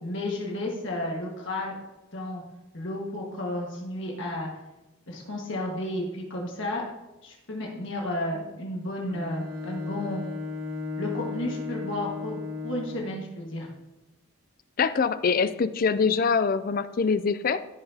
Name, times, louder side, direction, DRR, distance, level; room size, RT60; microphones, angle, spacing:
voice 1, 0.0-1.7 2.1-2.4 2.7-4.5 5.1-6.8 7.2-10.2 11.0-13.7, left 1 dB, 55° left, -1 dB, 1.6 m, -32 dB
Bowed string instrument, 9.1-13.2, left 4 dB, 75° right, 1.0 m, -35 dB
voice 2, 14.8-17.6, left 5 dB, 40° left, 13 dB, 0.4 m, -24 dB
15.0 x 5.8 x 2.8 m, 0.98 s
head